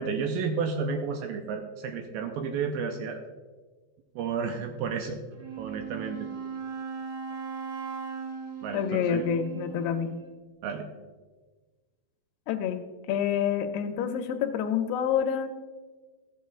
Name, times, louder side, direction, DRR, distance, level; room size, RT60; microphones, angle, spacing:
voice 1, 0.0-3.2 4.2-5.2 5.6-6.3 8.6-9.2 10.6-10.9, right 5 dB, 85° right, 4 dB, 2.1 m, -31 dB
Wind instrument woodwind instrument, 5.3-10.2, right 6 dB, 45° right, 2.9 m, -38 dB
voice 2, 8.7-10.1 12.5-12.8 13.1-15.5, left 8 dB, 80° left, 6 dB, 2.5 m, -27 dB
14.5 x 9.3 x 2.4 m, 1.3 s
omnidirectional pair, 4.8 m